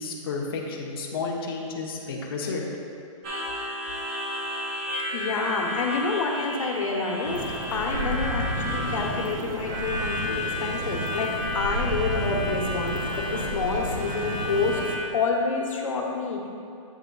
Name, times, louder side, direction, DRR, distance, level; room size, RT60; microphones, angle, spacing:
voice 1, 0.0-2.7, left 4 dB, 45° left, -1 dB, 0.8 m, -31 dB
Harmonica, 3.2-15.1, left 1 dB, 20° right, 0.5 m, -33 dB
voice 2, 5.1-14.8 15.1-16.5, left 4 dB, 80° left, 0 dB, 1.0 m, -28 dB
sound 1, 7.2-15.0, right 1 dB, 80° right, 1.0 m, -32 dB
8.2 x 3.2 x 3.8 m, 2.5 s
hypercardioid pair, 175°, 17 cm